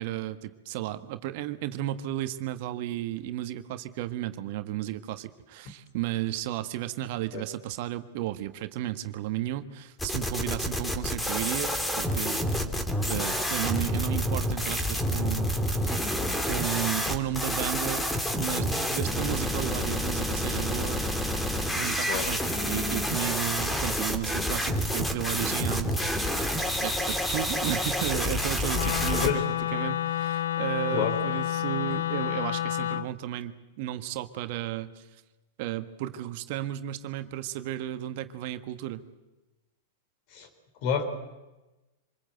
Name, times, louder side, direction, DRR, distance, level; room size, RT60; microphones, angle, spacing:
voice 1, 0.0-12.7 13.1-16.0 16.5-18.1 18.4-21.0 21.8-26.3 26.8-29.3 29.7-35.1 35.6-39.0, right 13 dB, 55° right, 10 dB, 1.4 m, -33 dB
voice 2, 7.3-7.4 22.1-22.3 29.2-29.4 30.9-31.2 31.9-32.0 40.3-40.5 40.8-41.0, left 7 dB, 50° left, 8 dB, 4.1 m, -28 dB
sound 1, 10.0-29.3, equal, 10° left, 2.7 m, -29 dB
Wind instrument woodwind instrument, 28.7-33.1, left 11 dB, 75° left, 0.8 m, -29 dB
25.5 x 21.0 x 7.9 m, 1.1 s
hypercardioid pair, 110°, 0 cm